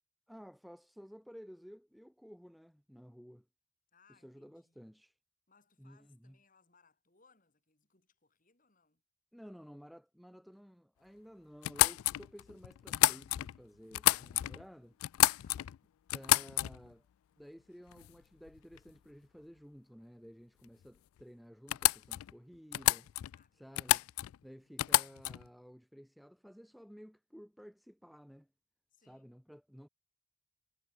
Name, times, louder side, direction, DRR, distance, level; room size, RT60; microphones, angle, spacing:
voice 1, 0.3-3.5 4.1-5.2 5.8-6.4 9.3-15.0 16.1-17.1 17.4-23.1 23.5-24.1 24.4-28.5 29.1-29.9, equal, ahead, 0.5 m, -54 dB
voice 2, 3.9-4.8 5.5-9.0 15.3-15.7 23.3-24.1 28.9-29.3, left 5 dB, 40° left, 4.3 m, -70 dB
sound 1, 11.6-13.6 13.9-14.6 15.0-15.8 16.1-16.9 17.9-18.1 18.5-18.9 20.8-20.9 21.2-21.3 21.7-22.3 22.7-23.4 23.8-24.4 24.8-25.5, left 16 dB, 85° left, 0.3 m, -30 dB
head